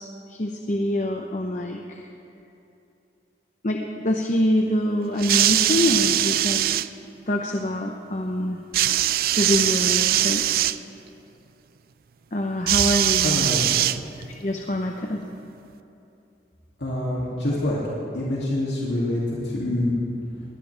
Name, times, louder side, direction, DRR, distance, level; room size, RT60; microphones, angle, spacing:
voice 1, 0.0-2.0 3.6-6.8 7.3-8.6 9.4-10.4 12.3-13.5 14.4-15.2, left 1 dB, 45° left, 2 dB, 0.8 m, -25 dB
sound 1, 5.2-6.9 8.7-10.8 12.7-14.4 15.3-15.4, right 13 dB, 55° right, 0.4 m, -21 dB
voice 2, 13.2-13.6 16.8-17.8 18.1-19.9, left 1 dB, 85° left, -6 dB, 2.6 m, -26 dB
21.5 x 18.0 x 3.4 m, 2.8 s
head